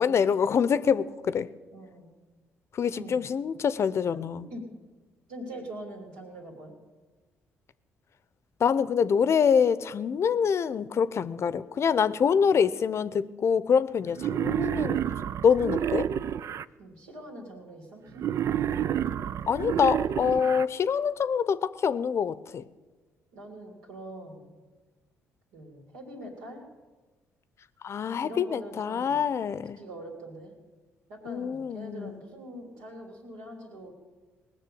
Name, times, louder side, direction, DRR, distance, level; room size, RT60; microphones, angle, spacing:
voice 1, 0.0-1.5 2.7-4.4 8.6-15.0 15.4-16.1 19.5-22.7 27.8-29.8 31.3-32.2, left 7 dB, 50° left, 16 dB, 0.7 m, -25 dB
voice 2, 1.7-2.1 2.9-3.2 4.5-4.7 5.3-6.8 12.2-13.1 16.8-18.3 20.4-20.5 23.3-24.5 25.5-26.6 28.2-29.2 29.8-30.5 31.1-33.9, right 1 dB, 80° right, 0 dB, 3.3 m, -43 dB
Wild animals, 14.2-16.7 18.2-20.7, right 9 dB, 55° right, 0.4 m, -29 dB
19.0 x 6.8 x 8.6 m, 1.3 s
hypercardioid pair, 50°, 6 cm